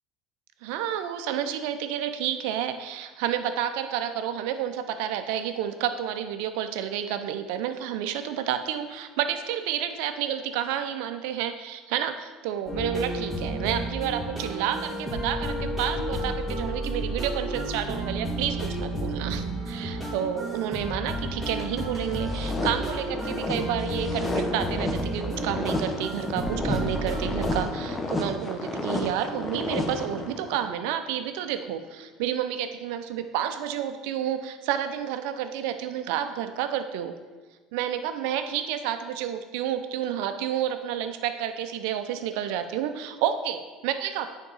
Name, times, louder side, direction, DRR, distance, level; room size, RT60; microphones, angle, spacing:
voice 1, 0.6-37.1 37.7-44.3, right 10 dB, 80° right, 9 dB, 0.5 m, -30 dB
sound 1, 12.7-27.6, right 1 dB, ahead, 1.8 m, -32 dB
sound 2, 22.0-30.6, left 2 dB, 25° left, 1.0 m, -32 dB
9.1 x 3.6 x 4.0 m, 1.3 s
supercardioid pair, 100°, 0 cm